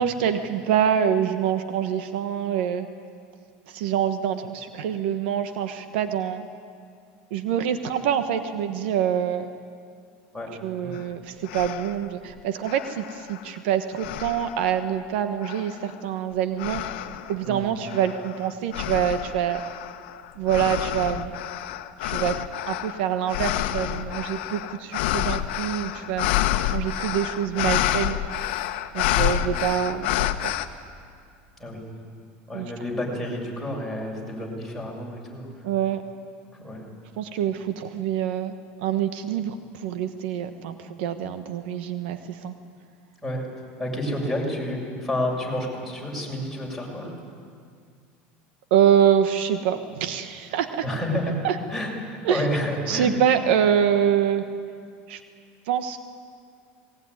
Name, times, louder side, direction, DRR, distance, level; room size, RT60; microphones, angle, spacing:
voice 1, 0.0-2.9 3.7-6.5 7.3-9.5 10.6-16.8 17.3-19.6 20.4-21.3 22.0-28.2 28.9-30.5 32.5-32.7 35.6-36.0 37.2-42.5 48.7-50.8 51.4-51.6 52.2-52.4 52.9-54.5 55.1-55.2 55.7-56.0, right 9 dB, 80° right, 9 dB, 1.3 m, -25 dB
sound 1, 10.9-11.0 11.5-12.0 12.6-13.6 14.0-14.8 15.4-15.9 16.6-17.3 17.9-30.7, left 13 dB, 80° left, 1.1 m, -28 dB
voice 2, 17.4-17.7 29.0-29.4 31.6-31.8 32.5-35.7 36.5-36.8 43.2-47.1 50.8-51.4 51.7-53.1, left 1 dB, ahead, -3 dB, 6.9 m, -30 dB
20.5 x 20.0 x 9.7 m, 2.2 s
supercardioid pair, 120°, 6 cm